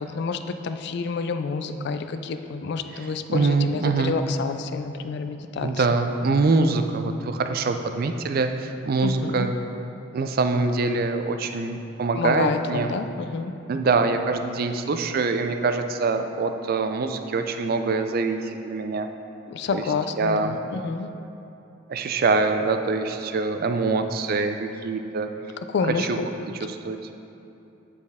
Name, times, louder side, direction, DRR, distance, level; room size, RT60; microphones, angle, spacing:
voice 1, 0.0-5.9 9.0-9.5 12.2-13.5 19.5-21.1 25.7-26.3, left 4 dB, 55° left, 9 dB, 0.3 m, -28 dB
voice 2, 3.3-4.2 5.6-9.5 10.1-12.9 13.7-19.1 19.7-19.8 20.2-20.6 21.9-25.3 25.9-26.2 26.7-27.0, right 3 dB, 45° right, 7 dB, 0.4 m, -24 dB
9.8 x 4.2 x 3.5 m, 2.9 s
head